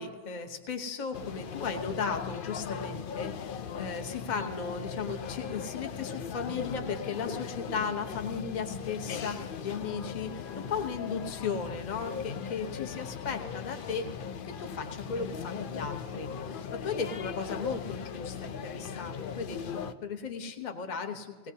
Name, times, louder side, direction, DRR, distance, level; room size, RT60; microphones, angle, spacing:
voice 1, 0.0-14.1 14.5-21.5, left 5 dB, 35° left, 5 dB, 0.9 m, -36 dB
sound 1, 1.1-19.9, left 7 dB, 80° left, 0.4 m, -38 dB
18.5 x 18.0 x 2.7 m, 1.5 s
omnidirectional pair, 1.5 m